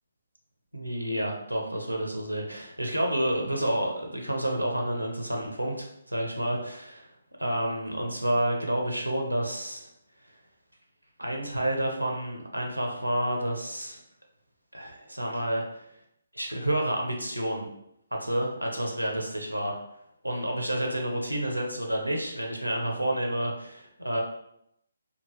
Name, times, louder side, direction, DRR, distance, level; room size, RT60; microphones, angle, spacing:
voice 1, 0.7-7.0 7.4-9.9 11.2-14.0 14.7-15.6 16.3-17.7 18.1-19.8 20.2-24.2, right 1 dB, 85° right, 1 dB, 0.7 m, -29 dB
2.8 x 2.4 x 2.9 m, 0.77 s
figure-of-eight pair, 140°, 0 cm